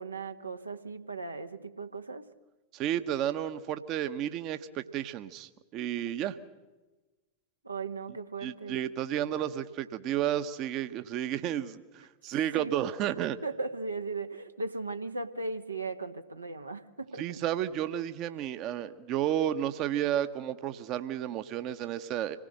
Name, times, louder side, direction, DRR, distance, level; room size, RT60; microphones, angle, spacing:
voice 1, 0.0-2.3 7.6-8.8 12.6-12.7 13.4-17.4, right 3 dB, 80° right, 7 dB, 1.3 m, -37 dB
voice 2, 2.7-6.4 8.4-13.4 17.2-22.4, right 11 dB, 40° right, 11 dB, 1.0 m, -32 dB
26.0 x 19.0 x 6.5 m, 1.2 s
figure-of-eight pair, 90°, 0 cm